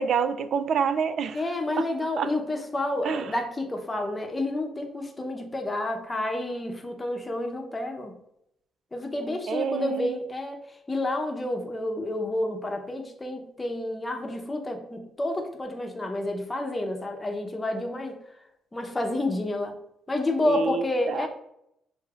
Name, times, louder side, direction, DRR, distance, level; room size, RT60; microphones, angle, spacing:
voice 1, 0.0-1.4 1.8-1.9 2.2-2.3 3.0-3.3 9.5-10.2 20.4-21.3, right 6 dB, 65° right, 11 dB, 0.3 m, -27 dB
voice 2, 1.3-8.1 8.9-10.6 10.9-18.2 18.7-19.8 20.1-21.3, left 1 dB, 20° left, 3 dB, 0.8 m, -29 dB
6.5 x 2.7 x 2.4 m, 0.78 s
cardioid pair, 90°, 0 cm